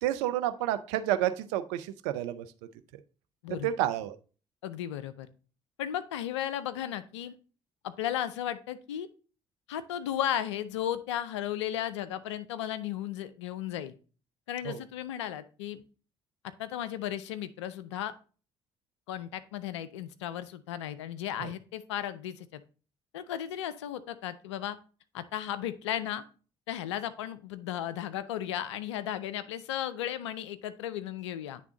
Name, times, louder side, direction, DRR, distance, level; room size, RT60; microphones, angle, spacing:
voice 1, 0.0-2.5 3.6-4.2 14.6-14.8 21.4-21.5, right 12 dB, 80° right, 11 dB, 0.5 m, -30 dB
voice 2, 4.6-5.3 5.8-7.3 7.8-9.1 9.7-13.9 14.5-15.8 16.4-18.1 19.1-22.6 23.1-24.8 25.1-26.2 26.7-31.6, left 11 dB, 90° left, 13 dB, 0.4 m, -35 dB
9.2 x 3.5 x 3.8 m, 0.37 s
hypercardioid pair, 50°, 15 cm